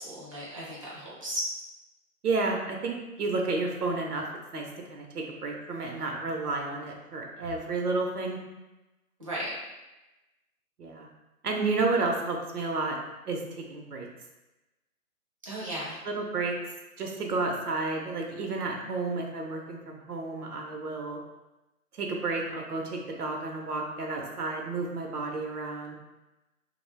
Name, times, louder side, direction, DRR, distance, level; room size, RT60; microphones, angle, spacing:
voice 1, 0.0-1.4 9.2-9.5 15.4-16.0, equal, 25° right, -6 dB, 0.5 m, -35 dB
voice 2, 2.2-4.3 4.5-8.4 10.8-11.1 11.4-13.0 13.3-14.1 16.0-16.6 17.0-21.2 21.9-26.0, right 3 dB, 85° right, 1 dB, 0.7 m, -31 dB
2.5 x 2.2 x 3.2 m, 1.0 s
figure-of-eight pair, 145°, 45 cm